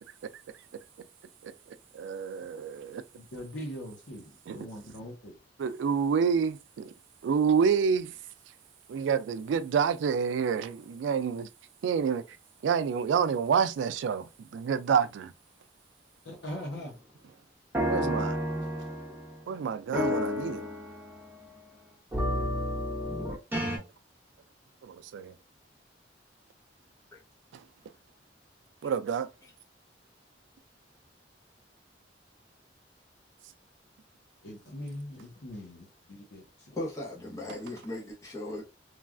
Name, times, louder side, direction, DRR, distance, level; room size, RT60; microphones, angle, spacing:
voice 1, 1.9-3.0 4.5-4.6 5.6-6.9 7.2-8.1 8.9-11.5 11.8-12.2 12.6-15.3 17.8-18.4 19.5-20.7 23.7-23.8 24.8-25.3 27.5-27.6 28.8-29.3, right 6 dB, 85° right, 0.3 m, -28 dB
voice 2, 3.1-5.4 16.2-16.9 34.4-36.7, equal, 70° left, 0.8 m, -41 dB
sound 1, 17.7-19.4 19.9-21.5 22.1-23.8, equal, 10° right, 0.9 m, -31 dB
voice 3, 36.7-38.6, left 1 dB, 20° left, 0.7 m, -38 dB
3.1 x 2.3 x 2.4 m
head